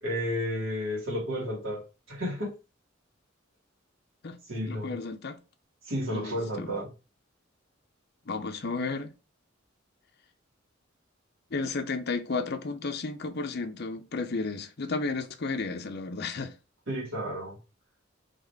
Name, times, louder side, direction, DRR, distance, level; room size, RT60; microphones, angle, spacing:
voice 1, 0.0-2.5 4.4-4.9 5.8-6.9 16.9-17.6, equal, 80° right, 2.5 m, -32 dB
voice 2, 4.7-5.4 6.1-6.8 8.3-9.1 11.5-16.5, left 3 dB, 55° left, 0.7 m, -33 dB
4.2 x 3.5 x 3.4 m
head